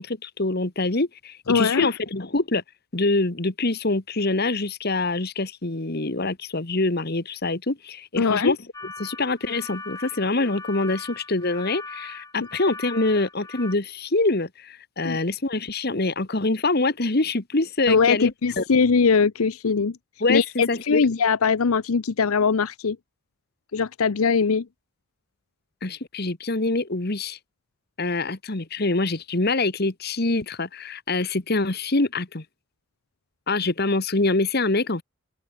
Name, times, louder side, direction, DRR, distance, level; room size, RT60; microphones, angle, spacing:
voice 1, 0.0-2.6 2.9-8.6 9.0-18.6 20.2-20.4 20.7-21.0 25.8-27.4 28.0-32.4 33.5-35.0, left 2 dB, 45° left, 1.5 m, -25 dB
voice 2, 1.5-1.9 8.2-8.6 12.4-12.5 15.0-15.2 17.9-20.0 20.3-23.0 23.7-24.7, left 5 dB, 85° left, 0.7 m, -21 dB
sound 1, 8.7-13.7, left 3 dB, 15° left, 7.7 m, -40 dB
open air
head